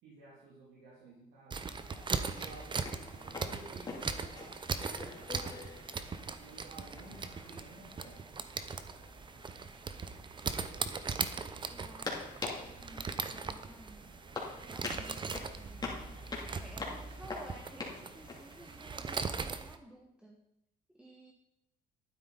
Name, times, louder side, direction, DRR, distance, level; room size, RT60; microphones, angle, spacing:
voice 1, 0.0-1.7 2.3-5.9 6.4-8.2, right 3 dB, 75° right, -5 dB, 3.1 m, -53 dB
sound 1, 1.5-19.0, left 3 dB, 25° left, 2.9 m, -46 dB
sound 2, 1.5-19.8, right 5 dB, 30° right, 0.8 m, -40 dB
voice 2, 3.2-3.6 11.7-14.1 14.6-15.9 16.4-20.4 20.9-21.3, right 1 dB, 5° right, 1 dB, 1.4 m, -54 dB
12.0 x 9.3 x 4.1 m, 0.85 s
cardioid pair, 110°, 17 cm